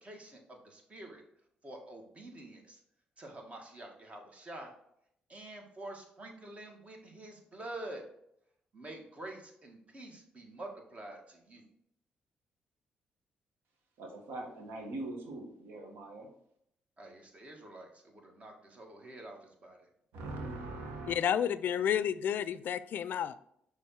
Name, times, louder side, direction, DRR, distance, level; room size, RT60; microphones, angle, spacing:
voice 1, 0.0-1.2 1.6-2.8 3.2-4.7 5.3-8.0 8.7-11.6 17.0-19.9, right 1 dB, 35° right, 2 dB, 1.7 m, -47 dB
voice 2, 14.0-16.3 20.1-21.2, right 2 dB, 80° right, 2 dB, 1.4 m, -42 dB
voice 3, 21.1-23.4, left 9 dB, 65° left, 16 dB, 0.3 m, -31 dB
6.3 x 3.4 x 4.4 m, 0.73 s
supercardioid pair, 65°, 3 cm